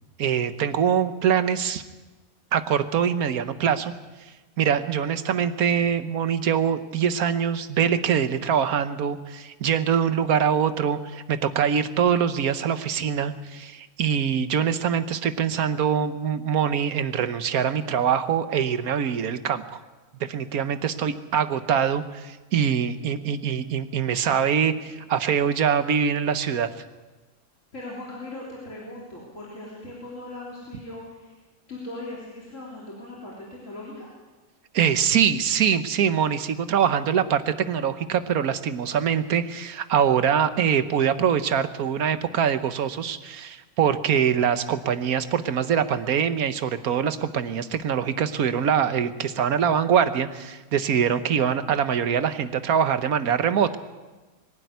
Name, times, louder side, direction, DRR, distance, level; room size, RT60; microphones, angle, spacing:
voice 1, 0.2-1.8 2.5-3.9 4.2-19.8 20.2-26.7 34.7-53.8, right 8 dB, 80° right, 11 dB, 1.5 m, -24 dB
voice 2, 27.7-31.4 31.7-34.1, left 2 dB, 60° left, -5 dB, 3.8 m, -39 dB
23.0 x 12.5 x 9.5 m, 1.2 s
omnidirectional pair, 1.5 m